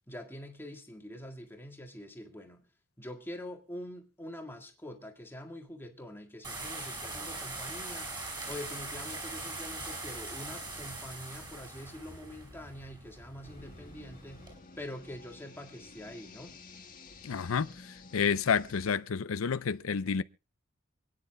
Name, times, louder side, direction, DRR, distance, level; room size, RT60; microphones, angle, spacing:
voice 1, 0.1-2.7 3.0-8.2 8.5-14.5 14.8-16.5, left 1 dB, 10° left, 1.8 m, -45 dB
sound 1, 6.4-14.6, right 2 dB, 20° right, 5.7 m, -41 dB
sound 2, 13.4-18.9, left 3 dB, 40° left, 2.0 m, -52 dB
voice 2, 17.2-17.7 18.1-20.2, left 6 dB, 80° left, 0.5 m, -29 dB
27.5 x 9.7 x 2.2 m
head